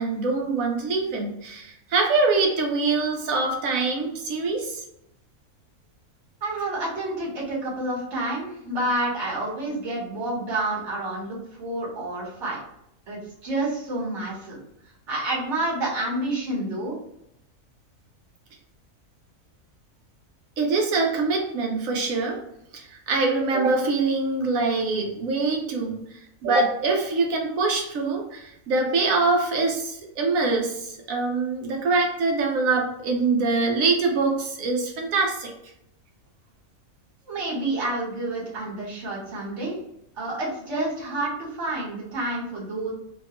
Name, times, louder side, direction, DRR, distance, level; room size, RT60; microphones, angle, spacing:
voice 1, 0.0-4.8 20.6-22.4 22.7-35.5, right 3 dB, 75° right, 1 dB, 1.1 m, -24 dB
voice 2, 6.4-12.6 13.1-14.6 15.1-16.9 37.3-39.8 40.2-42.9, right 2 dB, 55° right, -6 dB, 1.5 m, -29 dB
3.3 x 2.2 x 2.9 m, 0.79 s
omnidirectional pair, 1.5 m